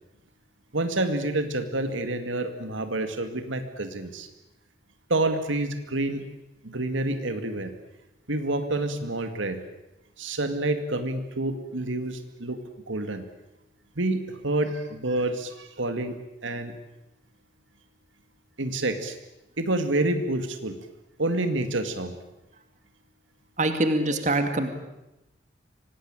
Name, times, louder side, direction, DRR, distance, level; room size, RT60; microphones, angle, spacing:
voice 1, 0.7-4.3 5.1-6.3 6.6-7.7 8.3-9.6 10.2-13.2 14.0-16.8 18.6-19.2 19.6-20.8 21.2-22.2, right 2 dB, 85° right, 8 dB, 2.2 m, -28 dB
voice 2, 23.6-24.7, right 2 dB, 40° right, 7 dB, 2.4 m, -24 dB
25.5 x 19.0 x 8.9 m, 0.93 s
head